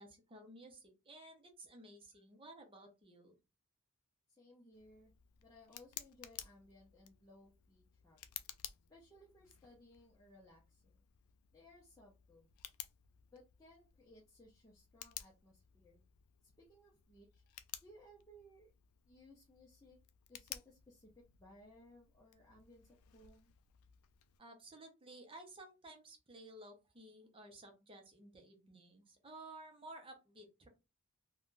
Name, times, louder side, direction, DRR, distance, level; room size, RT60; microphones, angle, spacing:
voice 1, 0.0-3.3 24.4-30.7, right 1 dB, 25° right, 4 dB, 0.7 m, -55 dB
voice 2, 4.3-5.1 5.4-8.2 8.9-11.0 11.5-12.5 13.3-16.0 16.4-17.4 17.8-18.7 19.1-20.0 20.3-23.5, left 1 dB, 15° left, -4 dB, 0.6 m, -62 dB
Tick, 4.7-24.4, left 12 dB, 75° left, 0.3 m, -55 dB
3.3 x 2.2 x 2.5 m, 0.27 s
head